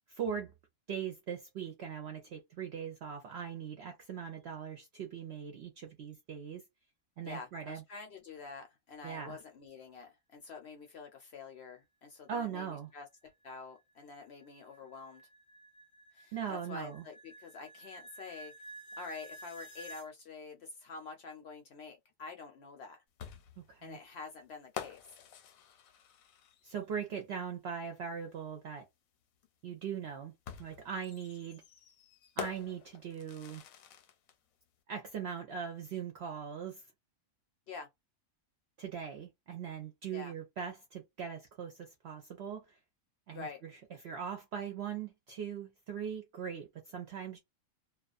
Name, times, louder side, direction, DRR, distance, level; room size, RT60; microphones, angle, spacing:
voice 1, 0.1-0.5 0.9-6.6 7.2-7.8 9.0-9.4 12.3-12.9 16.3-17.0 23.7-24.0 26.6-28.9 29.6-30.3 30.6-31.6 32.4-33.6 34.9-36.8 38.8-42.8 43.3-43.7 44.0-47.4, right 7 dB, 65° right, 0.7 m, -40 dB
voice 2, 7.2-15.2 16.1-18.5 19.0-23.0 23.8-25.0 37.7-37.9 40.1-40.3 43.3-43.6, left 4 dB, 65° left, 0.7 m, -47 dB
sound 1, 12.9-20.1, right 2 dB, 25° left, 0.4 m, -52 dB
sound 2, 23.2-26.8 28.3-28.4 30.5-34.4, left 9 dB, 80° left, 1.0 m, -47 dB
2.3 x 2.2 x 2.4 m
omnidirectional pair, 1.4 m